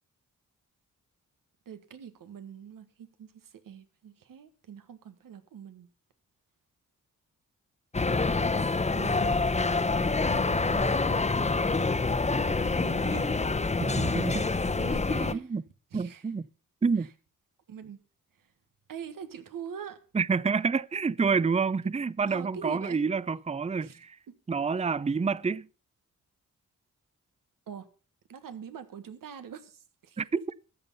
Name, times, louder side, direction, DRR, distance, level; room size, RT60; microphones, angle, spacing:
voice 1, 1.7-5.9 8.9-9.6 12.4-13.4 14.8-15.5 15.9-16.3 17.7-18.0 18.9-20.0 22.3-23.0 23.8-24.0 27.7-27.9 28.3-30.2, right 7 dB, 85° right, 1.6 m, -43 dB
sound 1, 7.9-15.3, left 3 dB, 20° left, 0.9 m, -26 dB
voice 2, 13.8-14.5 15.3-15.6 15.9-16.4 16.8-17.1 20.1-24.2 24.5-25.7 30.2-30.3, right 5 dB, 20° right, 0.6 m, -28 dB
13.5 x 8.9 x 5.6 m
cardioid pair, 60°, 32 cm